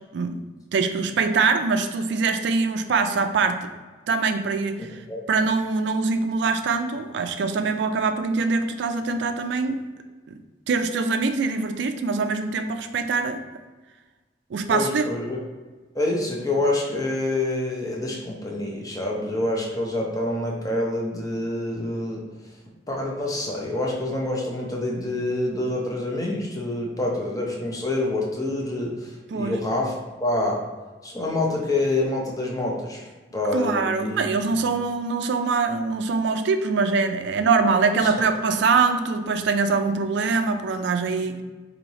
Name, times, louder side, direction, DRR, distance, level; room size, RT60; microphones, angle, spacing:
voice 1, 0.7-3.7 4.1-5.0 5.3-9.8 10.3-10.4 10.7-13.4 14.5-15.0 29.3-29.6 33.5-41.4, right 4 dB, 70° right, 8 dB, 0.4 m, -23 dB
voice 2, 14.7-15.4 15.9-22.2 22.9-29.9 30.2-30.6 31.0-33.1 33.3-34.3 34.5-34.6 37.9-38.3, left 2 dB, 20° left, -2 dB, 0.7 m, -27 dB
3.1 x 2.7 x 4.0 m, 1.3 s
head